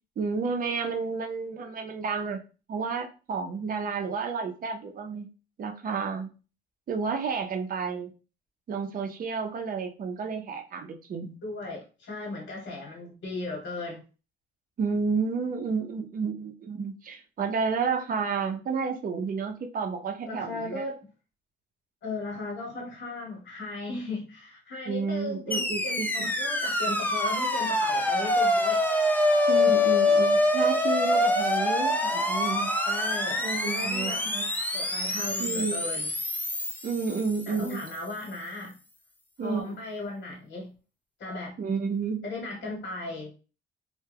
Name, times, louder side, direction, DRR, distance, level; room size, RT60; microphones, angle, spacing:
voice 1, 0.2-2.4 2.7-5.3 5.6-6.3 6.9-8.1 8.7-11.4 14.8-20.8 24.9-26.3 29.5-32.7 33.4-34.5 35.4-35.9 36.8-37.8 39.4-39.8 41.6-42.2, right 5 dB, 45° right, 4 dB, 0.6 m, -31 dB
voice 2, 11.4-14.0 20.2-21.1 22.0-28.8 32.8-33.4 33.7-34.2 34.7-36.1 37.5-38.7 39.4-40.7 41.2-41.5 42.2-43.3, left 2 dB, 60° left, -2 dB, 1.1 m, -36 dB
sound 1, 25.5-37.7, left 1 dB, 10° left, 0.4 m, -25 dB
2.2 x 2.2 x 3.3 m, 0.34 s
cardioid pair, 90°, 20 cm